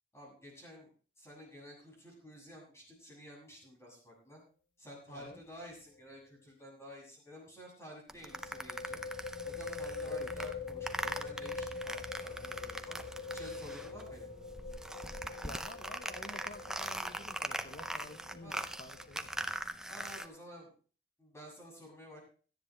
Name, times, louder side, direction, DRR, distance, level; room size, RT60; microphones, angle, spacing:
voice 1, 0.1-0.9 1.2-4.4 4.8-9.0 9.4-13.0 13.3-14.3 18.4-18.7 19.9-20.7 21.2-22.2, equal, 15° left, -2 dB, 7.0 m, -51 dB
voice 2, 5.1-5.4 10.0-10.5 15.4-19.3, left 2 dB, 50° left, 7 dB, 0.9 m, -50 dB
sound 1, 5.2-5.4 5.7-5.8 8.3-19.6, left 4 dB, 80° left, 3.0 m, -44 dB
sound 2, 8.1-14.1 14.4-20.3, right 1 dB, 5° right, 0.6 m, -41 dB
Wind instrument woodwind instrument, 12.9-18.7, right 3 dB, 20° right, 5.5 m, -61 dB
17.5 x 13.5 x 3.3 m, 0.40 s
head